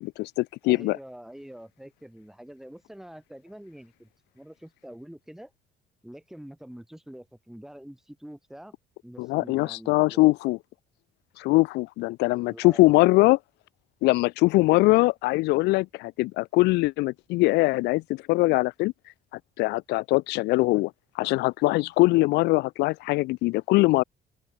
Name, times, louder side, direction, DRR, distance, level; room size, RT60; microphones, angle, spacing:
voice 1, 0.0-1.0 9.2-10.6 11.4-13.4 14.0-18.9 19.6-20.9 21.2-24.0, left 21 dB, 85° left, 0.5 m, -22 dB
voice 2, 0.6-5.5 6.0-8.7 9.0-10.2 12.5-13.1, equal, ahead, 3.1 m, -45 dB
open air
cardioid pair, 110°, 17 cm